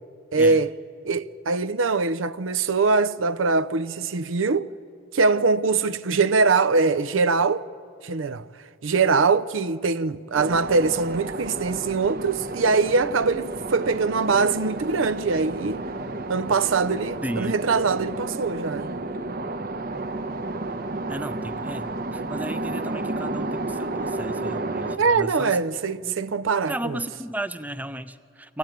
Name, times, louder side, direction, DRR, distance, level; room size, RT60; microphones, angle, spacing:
voice 1, 0.3-0.7 1.0-4.7 5.1-7.6 8.0-8.5 8.8-15.8 16.3-19.0 25.0-27.0, right 4 dB, 85° right, 0.6 m, -22 dB
sound 1, 10.3-25.0, right 2 dB, 50° right, 0.9 m, -31 dB
voice 2, 17.2-17.7 21.1-25.6 26.0-26.2 26.7-28.6, right 1 dB, 10° right, 0.5 m, -34 dB
24.5 x 15.5 x 9.1 m
head